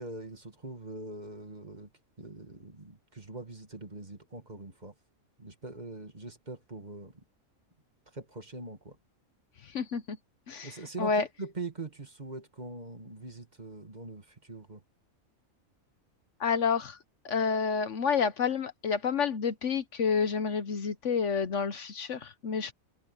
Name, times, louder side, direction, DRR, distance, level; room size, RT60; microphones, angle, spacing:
voice 1, 0.0-1.9 2.2-4.9 5.4-7.2 8.1-9.0 10.6-14.8, right 2 dB, 30° right, 2.2 m, -42 dB
voice 2, 9.7-10.2 10.5-10.7 11.0-11.2 16.4-17.0 17.2-22.7, left 6 dB, 60° left, 1.2 m, -29 dB
omnidirectional pair, 1.5 m